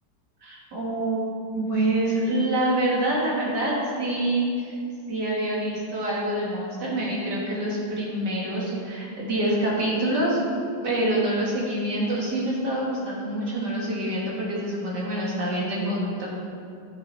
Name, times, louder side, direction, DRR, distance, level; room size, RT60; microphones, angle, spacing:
voice 1, 0.4-1.2 1.5-4.7 5.1-10.4 10.8-16.3, right 1 dB, 70° right, -5 dB, 3.0 m, -26 dB
13.0 x 7.6 x 4.3 m, 2.4 s
omnidirectional pair, 1.9 m